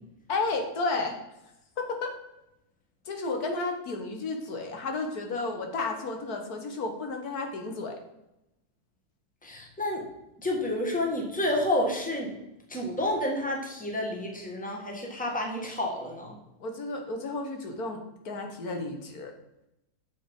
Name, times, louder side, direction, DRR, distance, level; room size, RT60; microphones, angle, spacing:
voice 1, 0.3-1.2 1.8-2.1 3.0-8.0 16.6-19.3, left 3 dB, 75° left, 4 dB, 1.7 m, -32 dB
voice 2, 9.4-10.0 10.4-12.3 12.7-16.3, left 1 dB, 5° left, 0 dB, 1.5 m, -30 dB
7.2 x 6.2 x 5.3 m, 0.88 s
omnidirectional pair, 1.6 m